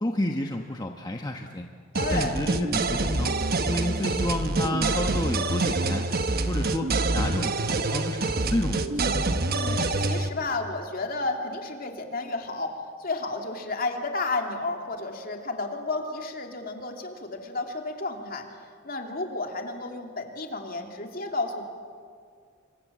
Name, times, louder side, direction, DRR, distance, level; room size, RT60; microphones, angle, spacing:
voice 1, 0.0-1.7 2.1-6.1 6.5-9.0, left 1 dB, 20° left, 2 dB, 1.1 m, -30 dB
voice 2, 1.9-2.3 9.5-18.5 18.8-21.6, left 3 dB, 45° left, 3 dB, 2.9 m, -32 dB
sound 1, 1.9-10.3, right 2 dB, 50° right, 1.2 m, -26 dB
29.5 x 24.5 x 7.6 m, 2.2 s
head